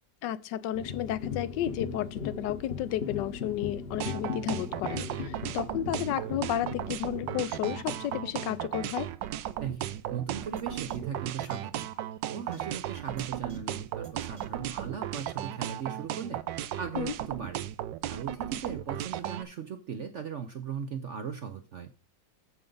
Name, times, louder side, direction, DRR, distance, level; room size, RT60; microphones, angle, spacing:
voice 1, 0.2-9.1 16.9-17.1, left 12 dB, 75° left, 1.2 m, -32 dB
sound 1, 0.7-9.1, left 6 dB, 40° left, 1.0 m, -39 dB
sound 2, 4.0-19.4, right 12 dB, 90° right, 1.3 m, -35 dB
voice 2, 9.6-11.9 12.3-16.4 16.8-17.7 18.1-21.9, right 7 dB, 60° right, 0.7 m, -38 dB
sound 3, 10.6-10.7 10.9-11.0 11.4-11.5 11.8-11.9 12.5-12.6 13.2-13.3 13.5-13.6 14.0-14.1 14.4-14.5 15.1-15.2 16.1-16.2, right 3 dB, 40° right, 1.6 m, -48 dB
13.5 x 5.2 x 3.8 m
omnidirectional pair, 2.0 m